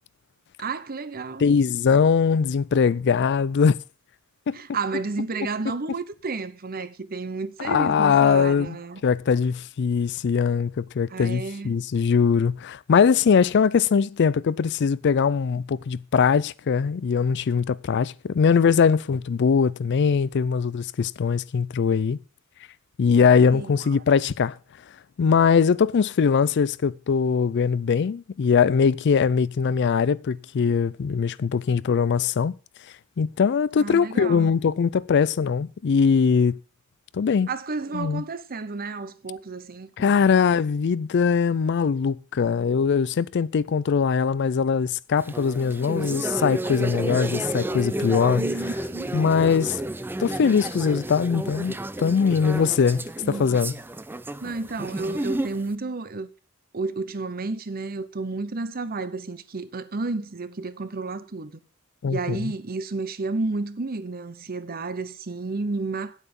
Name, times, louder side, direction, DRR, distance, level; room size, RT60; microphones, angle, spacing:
voice 1, 0.6-1.4 4.5-9.0 11.1-11.8 23.5-23.8 33.8-34.5 37.5-40.4 48.4-49.1 53.2-53.6 54.4-56.3 56.7-61.6 62.1-66.2, right 3 dB, 45° right, 0.8 m, -31 dB
voice 2, 1.4-3.8 4.5-4.6 7.6-8.8 9.0-22.2 23.0-24.6 25.2-32.5 33.2-36.6 37.1-37.5 37.9-38.2 40.0-48.4 49.1-49.8 50.2-53.7 62.0-62.5, left 6 dB, 55° left, 0.4 m, -21 dB
sound 1, 45.2-55.7, right 1 dB, 10° right, 0.4 m, -31 dB
9.1 x 8.4 x 5.3 m
head